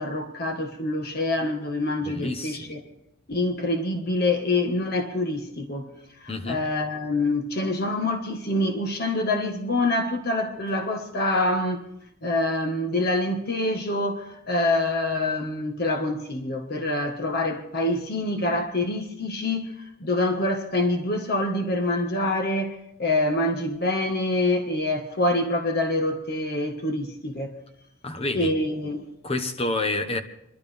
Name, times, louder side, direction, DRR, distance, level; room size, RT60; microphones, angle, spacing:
voice 1, 0.0-2.8 3.3-5.9 6.2-11.8 12.2-19.7 20.0-27.6 28.3-29.1, left 2 dB, 50° left, 1.5 m, -26 dB
voice 2, 2.0-2.7 6.3-6.6 28.0-28.5 29.2-30.2, left 2 dB, 30° left, 1.1 m, -28 dB
28.0 x 12.0 x 3.5 m
head